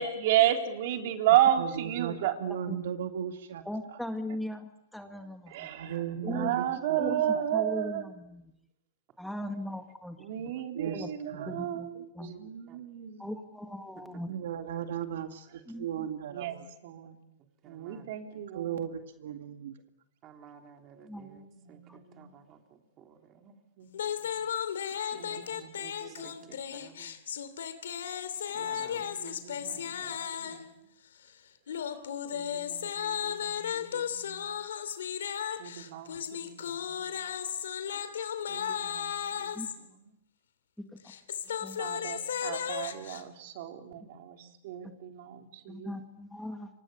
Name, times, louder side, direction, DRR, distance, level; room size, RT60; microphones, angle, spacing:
voice 1, 0.0-2.4 5.5-8.1 10.2-14.2 16.3-16.6 16.8-17.2 17.7-18.9 21.1-22.4 23.8-23.9 24.2-24.4 25.1-26.5 28.5-30.6 32.3-34.5 35.6-37.1 38.5-40.1 41.8-46.1, right 11 dB, 55° right, 4 dB, 3.7 m, -33 dB
voice 2, 1.6-3.6 3.9-4.0 5.7-7.0 10.7-11.7 11.9-12.5 14.3-16.7 18.5-19.8, right 9 dB, 75° right, 6 dB, 2.1 m, -37 dB
voice 3, 3.6-5.7 6.2-6.5 7.0-7.2 7.5-8.5 9.2-10.2 10.9-11.1 11.4-11.9 12.1-12.3 13.2-14.3 15.7-16.1 21.0-21.3 39.5-39.7 41.6-41.8 45.7-46.7, left 1 dB, ahead, 5 dB, 1.9 m, -38 dB
voice 4, 6.0-6.4 10.4-10.6 12.7-12.8 14.1-14.2 14.8-14.9 17.6-18.4 20.2-23.5 25.1-27.2 28.3-29.1 29.5-30.6, right 8 dB, 30° right, 3 dB, 3.7 m, -56 dB
sound 1, 23.9-30.7 31.7-39.8 41.0-43.2, left 8 dB, 85° left, 2.9 m, -35 dB
28.5 x 24.5 x 7.0 m, 0.85 s
hypercardioid pair, 145°, 0 cm